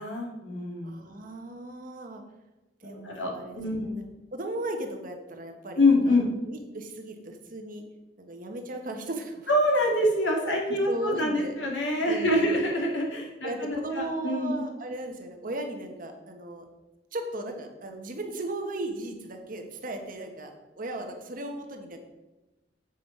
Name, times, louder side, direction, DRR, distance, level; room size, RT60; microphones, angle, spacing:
voice 1, 0.0-1.1 2.8-3.9 5.8-6.3 9.5-14.6, left 1 dB, 90° left, 0 dB, 2.1 m, -26 dB
voice 2, 0.8-2.2 2.8-4.1 4.3-6.1 6.5-7.8 8.2-9.5 10.4-11.6 12.1-12.6 13.4-16.6 17.1-22.0, right 1 dB, 50° right, 4 dB, 1.2 m, -36 dB
8.1 x 5.3 x 5.4 m, 1.1 s
head